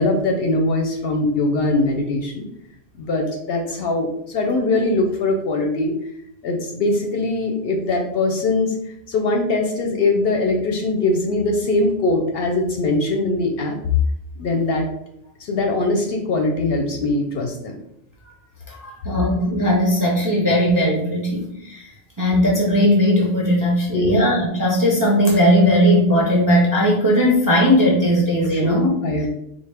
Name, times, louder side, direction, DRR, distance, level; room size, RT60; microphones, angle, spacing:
voice 1, 0.0-2.4 3.0-5.9 6.4-13.8 14.4-14.9 15.4-17.8 23.9-24.2 28.5-29.3, left 2 dB, 65° left, 2 dB, 0.7 m, -21 dB
voice 2, 18.7-21.9 22.2-28.9, equal, 25° right, -2 dB, 0.4 m, -18 dB
3.8 x 2.1 x 3.3 m, 0.77 s
omnidirectional pair, 1.2 m